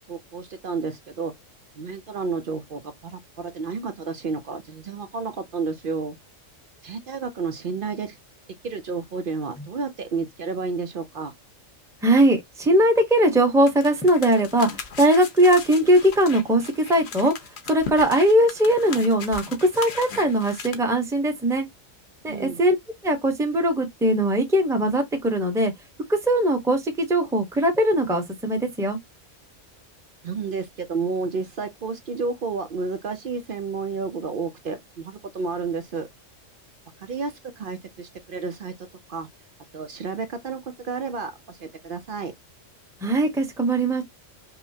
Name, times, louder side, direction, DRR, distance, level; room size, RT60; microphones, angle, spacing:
voice 1, 0.1-1.3 1.8-6.2 6.8-8.2 8.6-11.3 22.3-22.6 30.2-36.1 37.0-38.7 39.1-39.3 39.7-42.3, right 4 dB, 55° right, 0.6 m, -31 dB
voice 2, 12.0-14.7 15.0-16.6 16.9-17.3 17.7-21.7 22.2-22.7 23.0-25.7 26.1-29.0 43.0-44.0, right 1 dB, 5° right, 0.9 m, -20 dB
sound 1, 13.7-20.7, left 5 dB, 60° left, 1.0 m, -38 dB
5.5 x 2.0 x 2.7 m
omnidirectional pair, 1.3 m